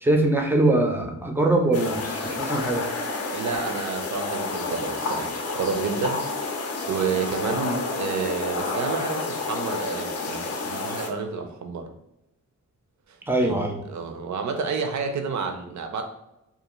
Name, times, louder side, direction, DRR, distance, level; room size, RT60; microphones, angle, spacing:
voice 1, 0.0-2.8 7.6-7.8 13.3-13.8, right 2 dB, 5° right, 2 dB, 0.4 m, -22 dB
sound 1, 1.7-11.1, left 3 dB, 50° left, 0.5 m, -30 dB
voice 2, 3.3-11.9 13.1-16.0, right 5 dB, 65° right, 6 dB, 0.5 m, -30 dB
2.5 x 2.4 x 2.9 m, 0.88 s
wide cardioid pair, 110°, 32 cm